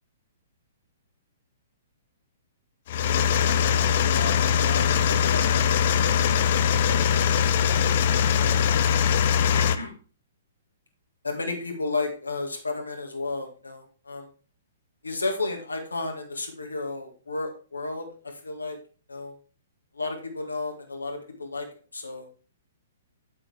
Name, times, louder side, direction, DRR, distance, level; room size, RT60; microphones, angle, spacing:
sound 1, 2.9-9.8, left 8 dB, 45° left, 0.6 m, -22 dB
voice 1, 4.1-5.7 6.8-7.3 7.8-7.9 8.2-8.6 9.5-9.9 11.2-14.3 15.0-18.8 19.1-19.3 19.9-21.7 21.9-22.3, left 3 dB, 80° left, 3 dB, 1.9 m, -33 dB
8.7 x 7.9 x 3.5 m, 0.38 s
figure-of-eight pair, 115°, 0 cm